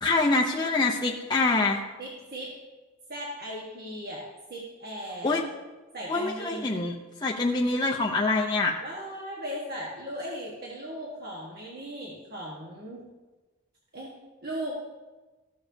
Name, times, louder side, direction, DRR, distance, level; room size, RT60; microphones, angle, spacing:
voice 1, 0.0-1.8 5.2-5.4 6.1-6.9 7.2-8.7, left 3 dB, 20° left, -2 dB, 0.5 m, -25 dB
voice 2, 2.0-2.5 3.1-5.4 5.9-6.8 8.8-13.1 13.9-14.1 14.4-14.8, equal, 45° right, -4 dB, 1.4 m, -37 dB
14.5 x 7.0 x 2.7 m, 1.2 s
head